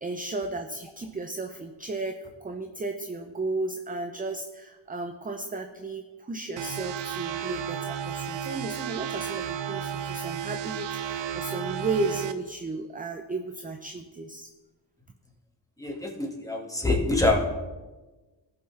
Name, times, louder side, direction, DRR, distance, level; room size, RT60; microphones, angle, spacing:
voice 1, 0.0-14.5, right 3 dB, 20° right, 5 dB, 0.5 m, -34 dB
sound 1, 6.6-12.3, right 8 dB, 65° right, 0.7 m, -33 dB
voice 2, 15.8-17.4, left 2 dB, 5° left, 1 dB, 1.7 m, -25 dB
17.0 x 5.9 x 3.3 m, 1.2 s
cardioid pair, 100°, 46 cm